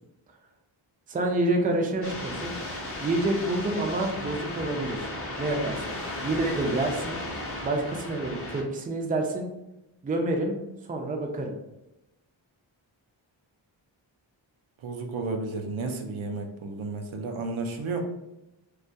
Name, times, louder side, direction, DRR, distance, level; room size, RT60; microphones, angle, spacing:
voice 1, 1.1-2.5 3.0-5.1 5.4-5.9 6.2-7.2 7.6-9.5 10.0-10.6 10.9-11.6, right 2 dB, 20° right, 3 dB, 0.4 m, -28 dB
sound 1, 2.0-8.6, left 1 dB, 30° left, 0.6 m, -35 dB
voice 2, 14.8-18.0, right 3 dB, 80° right, 4 dB, 0.5 m, -32 dB
2.3 x 2.1 x 2.6 m, 0.89 s
cardioid pair, 65°, 48 cm